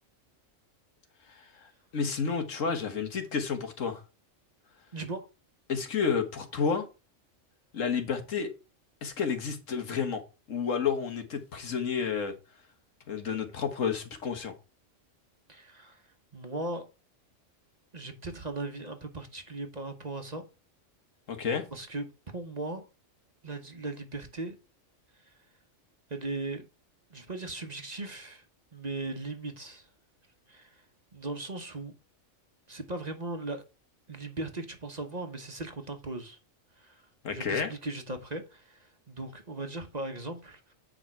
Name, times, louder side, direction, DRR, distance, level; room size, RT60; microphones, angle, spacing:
voice 1, 1.3-4.0 5.7-6.9 7.7-8.5 9.0-10.2 10.5-12.3 13.1-14.5 21.3-21.6 37.2-37.7, left 6 dB, 80° left, 1.7 m, -30 dB
voice 2, 4.9-5.3 15.5-16.0 16.3-16.9 17.9-20.4 21.7-22.1 22.3-22.9 23.4-24.6 25.3-25.4 26.1-26.7 27.1-28.4 28.7-29.9 30.5-30.7 31.1-31.9 32.7-33.6 34.1-36.4 36.8-37.0 37.3-40.7, right 2 dB, 35° right, 1.1 m, -38 dB
8.6 x 5.1 x 4.5 m
omnidirectional pair, 1.3 m